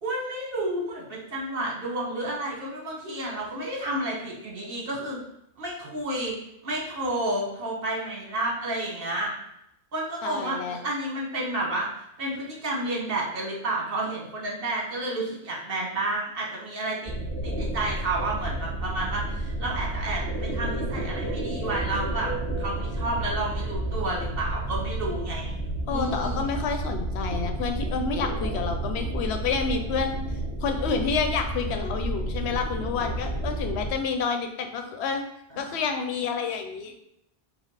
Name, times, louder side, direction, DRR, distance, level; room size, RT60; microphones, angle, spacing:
voice 1, 0.0-5.2 5.6-6.3 6.6-9.3 9.9-17.1 17.4-22.3 22.6-25.5 25.9-26.4 35.5-35.6, right 2 dB, 60° right, -2 dB, 1.3 m, -31 dB
voice 2, 10.2-10.8 25.9-30.2 30.6-35.2 35.6-37.0, left 5 dB, 85° left, 6 dB, 0.9 m, -29 dB
sound 1, 17.1-33.9, right 1 dB, 15° left, 0.8 m, -31 dB
5.3 x 2.1 x 4.6 m, 0.76 s
omnidirectional pair, 1.1 m